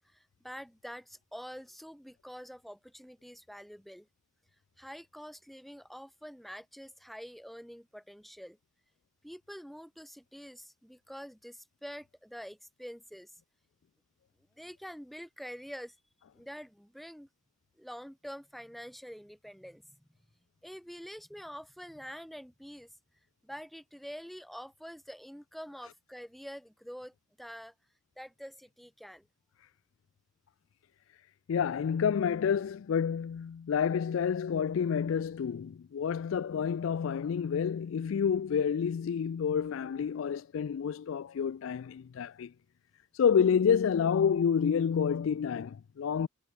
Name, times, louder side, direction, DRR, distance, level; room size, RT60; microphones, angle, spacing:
voice 1, 0.0-4.1 4.8-8.6 9.2-13.3 14.6-16.0 16.3-17.3 17.8-19.8 20.6-22.9 23.4-27.7 28.2-29.3, equal, ahead, 1.8 m, -46 dB
voice 2, 31.5-42.5 43.1-46.3, left 7 dB, 65° left, 0.3 m, -29 dB
head